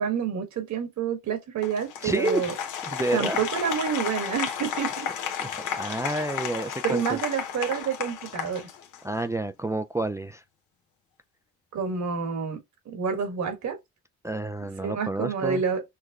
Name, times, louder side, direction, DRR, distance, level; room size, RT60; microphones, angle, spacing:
voice 1, 0.0-2.5 3.1-5.1 6.8-8.7 11.7-12.6 12.8-13.8 14.8-15.8, right 7 dB, 70° right, 1.6 m, -28 dB
Applause, 1.6-9.2, left 8 dB, 90° left, 1.0 m, -33 dB
voice 2, 2.0-2.6 2.9-3.5 5.4-7.2 9.0-10.4 14.2-15.6, right 2 dB, 10° right, 0.3 m, -29 dB
6.4 x 2.2 x 2.4 m
cardioid pair, 90°, 30 cm